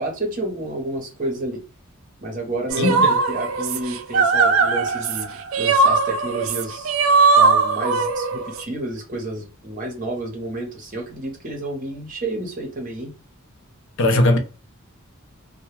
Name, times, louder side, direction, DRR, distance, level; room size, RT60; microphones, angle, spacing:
voice 1, 0.0-1.6 2.2-7.0 7.4-13.1, right 1 dB, 40° right, 0.8 m, -30 dB
sound 1, 2.7-8.6, right 4 dB, 70° right, 0.4 m, -19 dB
voice 2, 2.8-3.1 14.0-14.4, left 1 dB, 60° left, 0.5 m, -18 dB
2.2 x 2.1 x 3.0 m
head